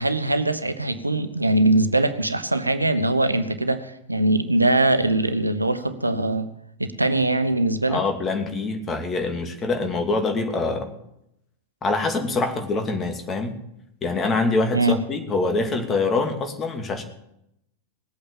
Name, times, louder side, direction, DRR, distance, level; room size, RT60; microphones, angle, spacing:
voice 1, 0.0-6.5 6.8-8.0 14.7-15.0, right 2 dB, 85° right, 11 dB, 1.0 m, -22 dB
voice 2, 7.9-10.9 11.8-13.6 14.0-17.0, left 3 dB, 20° left, 6 dB, 2.6 m, -25 dB
19.5 x 8.7 x 7.1 m, 0.79 s
figure-of-eight pair, 90°, 0 cm